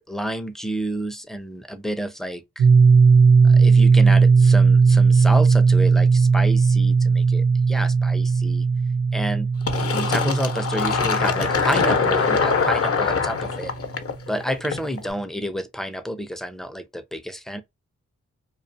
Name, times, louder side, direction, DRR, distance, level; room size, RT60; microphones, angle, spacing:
voice 1, 0.1-2.7 3.4-8.6 9.1-9.5 9.9-13.7 14.3-17.6, equal, ahead, 0.4 m, -29 dB
sound 1, 2.6-13.2, right 5 dB, 65° right, 0.6 m, -17 dB
Fill (with liquid), 9.7-15.1, left 5 dB, 50° left, 0.6 m, -23 dB
2.3 x 2.3 x 2.6 m
cardioid pair, 55°, 29 cm